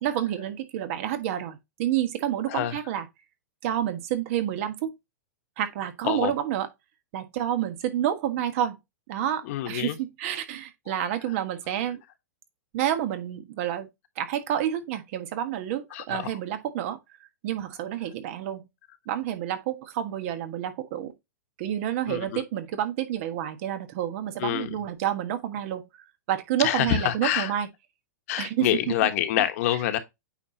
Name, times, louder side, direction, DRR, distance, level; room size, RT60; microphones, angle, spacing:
voice 1, 0.0-3.0 3.6-5.0 5.6-6.7 7.1-8.8 9.1-12.0 12.7-13.9 14.2-17.0 17.4-18.7 19.1-21.1 21.6-25.9 26.3-27.7 28.4-29.1, right 11 dB, 50° right, 1.4 m, -29 dB
voice 2, 2.5-2.8 6.0-6.3 9.4-10.0 10.9-11.0 15.9-16.3 22.1-22.4 24.4-24.8 26.6-27.5 28.3-30.0, left 12 dB, 55° left, 1.3 m, -27 dB
8.8 x 4.3 x 2.9 m
hypercardioid pair, 135°, 9 cm